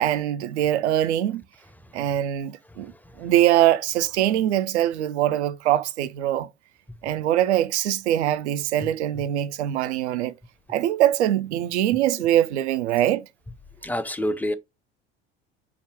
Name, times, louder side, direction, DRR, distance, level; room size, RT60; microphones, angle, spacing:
voice 1, 0.0-1.4 1.9-2.9 3.2-6.5 7.0-10.4 10.7-13.3, right 12 dB, 75° right, 0.5 m, -23 dB
voice 2, 2.7-3.3 12.2-12.3 13.8-14.5, left 1 dB, 5° left, 0.5 m, -30 dB
4.8 x 2.2 x 3.4 m
hypercardioid pair, 70°, 34 cm